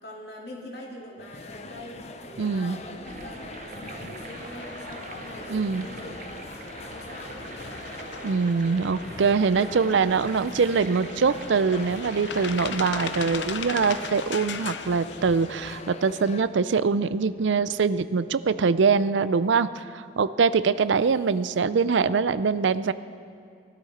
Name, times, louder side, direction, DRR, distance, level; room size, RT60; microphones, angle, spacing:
voice 1, 0.0-7.4 8.8-9.5 20.7-21.5, equal, 60° left, -1 dB, 2.6 m, -44 dB
sound 1, 1.2-16.5, left 3 dB, 35° left, 0.6 m, -42 dB
voice 2, 2.4-2.8 5.5-5.9 8.2-19.7 19.9-22.9, right 5 dB, 80° right, 15 dB, 0.4 m, -23 dB
sound 2, 3.0-14.1, right 3 dB, 45° right, 0.7 m, -43 dB
sound 3, 4.2-15.7, left 5 dB, 75° left, 0.7 m, -39 dB
19.5 x 13.0 x 4.2 m, 2.4 s
head